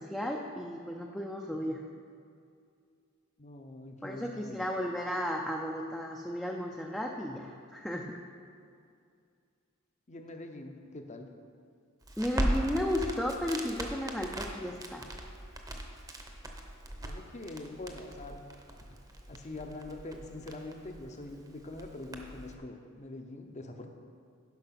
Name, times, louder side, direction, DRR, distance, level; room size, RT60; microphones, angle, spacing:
voice 1, 0.0-1.8 4.0-8.2 12.2-15.1, left 1 dB, 5° left, 0 dB, 0.5 m, -34 dB
voice 2, 3.4-4.7 10.1-11.3 17.0-18.4 19.3-23.9, left 2 dB, 35° left, 5 dB, 0.8 m, -44 dB
Crackle, 12.0-22.5, right 1 dB, 15° right, 0.8 m, -39 dB
10.5 x 5.5 x 5.8 m, 2.3 s
head